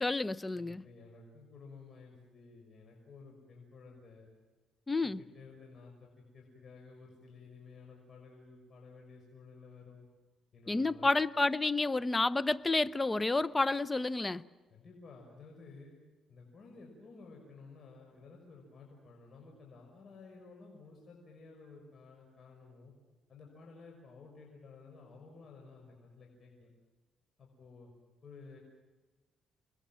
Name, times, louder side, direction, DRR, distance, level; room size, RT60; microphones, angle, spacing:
voice 1, 0.0-0.8 4.9-5.2 10.7-14.4, left 3 dB, 20° left, 0.7 m, -30 dB
voice 2, 0.5-4.3 4.9-10.1 10.5-11.1 14.7-15.9 16.3-22.9 23.3-26.7 27.4-27.9 28.2-28.6, left 4 dB, 50° left, 6.0 m, -54 dB
28.5 x 21.0 x 7.6 m
cardioid pair, 90°, 0 cm